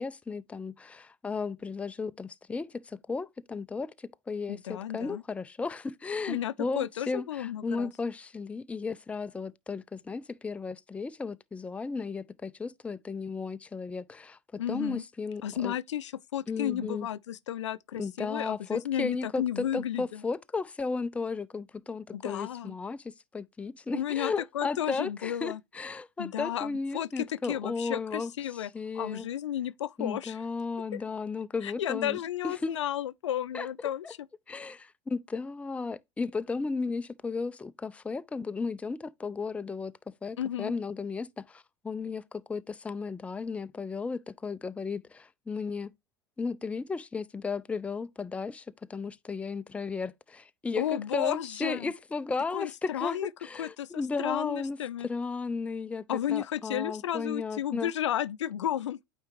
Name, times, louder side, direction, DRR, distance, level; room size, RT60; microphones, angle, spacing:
voice 1, 0.0-15.8 16.5-17.1 18.0-28.3 28.7-29.3 30.0-32.2 32.4-32.7 33.5-33.7 34.0-34.1 34.5-39.9 40.2-45.9 46.4-54.8 55.0-56.0 56.3-57.9, left 4 dB, 10° left, 0.3 m, -34 dB
voice 2, 4.5-5.2 6.3-7.9 14.6-15.0 15.4-20.2 22.1-22.7 23.9-25.6 26.2-30.4 30.9-31.0 31.6-34.2 40.4-40.7 50.8-51.9 52.5-53.3 53.6-55.1 56.1-59.0, left 11 dB, 80° left, 0.4 m, -33 dB
8.8 x 3.5 x 3.0 m
hypercardioid pair, 80°, 15 cm